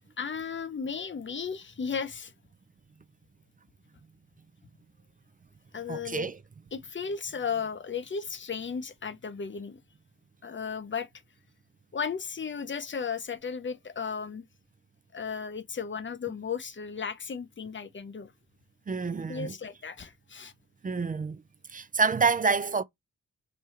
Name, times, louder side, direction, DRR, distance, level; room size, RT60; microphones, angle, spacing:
voice 1, 0.2-2.3 5.7-6.3 6.7-9.8 10.4-11.1 11.9-14.4 15.1-18.3 19.3-20.5, left 6 dB, 30° left, 0.7 m, -35 dB
voice 2, 5.9-6.4 18.9-19.5 20.8-21.4 21.7-22.8, right 4 dB, 25° right, 0.4 m, -27 dB
3.2 x 2.2 x 4.1 m
supercardioid pair, 45°, 36 cm